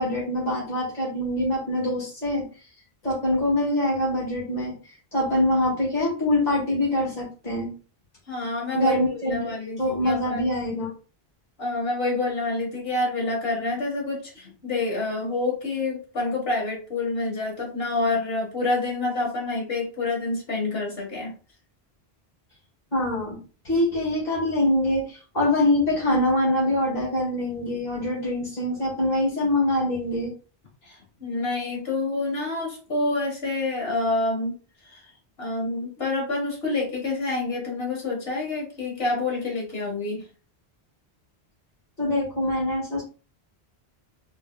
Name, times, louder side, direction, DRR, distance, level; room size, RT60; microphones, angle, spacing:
voice 1, 0.0-2.5 3.0-4.7 5.1-7.7 8.7-9.4 9.8-10.9 22.9-23.4 23.6-30.3 42.0-43.0, left 1 dB, 45° left, -5 dB, 2.1 m, -24 dB
voice 2, 8.3-10.5 11.6-21.3 30.8-34.6 34.9-35.0 35.4-40.2, left 2 dB, 70° left, -2 dB, 1.8 m, -27 dB
4.6 x 3.2 x 2.3 m, 0.36 s
omnidirectional pair, 1.0 m